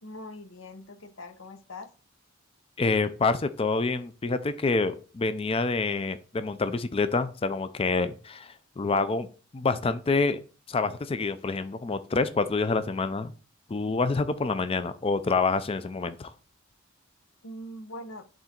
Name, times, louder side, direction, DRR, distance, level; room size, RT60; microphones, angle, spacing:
voice 1, 0.0-1.9 17.4-18.3, left 1 dB, 75° left, 9 dB, 0.9 m, -42 dB
voice 2, 2.8-9.3 9.5-10.4 10.7-13.3 13.7-16.3, left 3 dB, 30° left, 12 dB, 0.4 m, -27 dB
10.5 x 3.8 x 4.4 m, 0.38 s
head